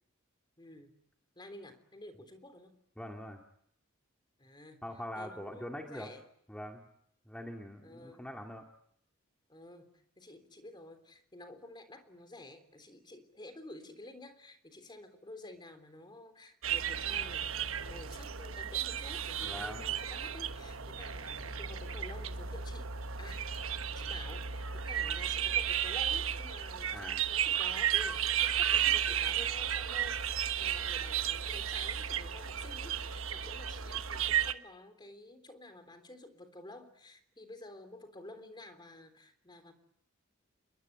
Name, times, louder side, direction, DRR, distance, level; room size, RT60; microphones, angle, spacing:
voice 1, 0.6-1.0 1.4-2.8 4.4-4.8 5.2-6.2 7.8-8.3 9.5-22.9 23.2-23.5 23.8-39.7, left 2 dB, 20° left, 9 dB, 3.4 m, -51 dB
voice 2, 3.0-3.4 4.8-6.1 6.5-6.8 7.3-8.6 19.4-20.0 26.9-27.3, equal, 5° left, 2 dB, 2.4 m, -43 dB
sound 1, 16.6-34.5, right 9 dB, 75° right, 1.2 m, -33 dB
sound 2, 16.7-25.1, left 2 dB, 85° left, 3.8 m, -57 dB
28.0 x 22.0 x 9.4 m, 0.71 s
head